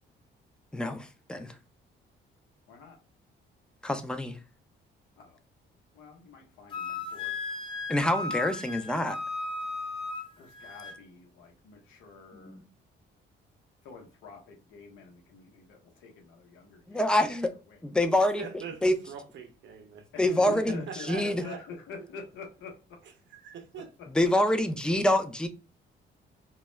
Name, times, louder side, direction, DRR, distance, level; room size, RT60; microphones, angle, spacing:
voice 1, 0.7-1.5 3.8-4.4 7.9-9.2 12.3-12.7 16.9-17.5 17.8-18.4 18.8-19.0 20.2-20.8 21.1-21.4 24.1-25.5, left 1 dB, 5° left, 0.4 m, -26 dB
voice 2, 2.7-3.0 5.2-5.4 5.9-7.4 10.4-12.6 13.8-17.0 17.7-17.8 20.1-23.0 23.7-23.8, left 4 dB, 85° left, 0.8 m, -46 dB
Wind instrument woodwind instrument, 6.7-11.0, left 3 dB, 25° left, 0.8 m, -36 dB
voice 3, 18.4-20.1 20.7-21.6 23.3-23.9, right 7 dB, 70° right, 0.7 m, -42 dB
2.3 x 2.0 x 3.1 m
cardioid pair, 90°, 20 cm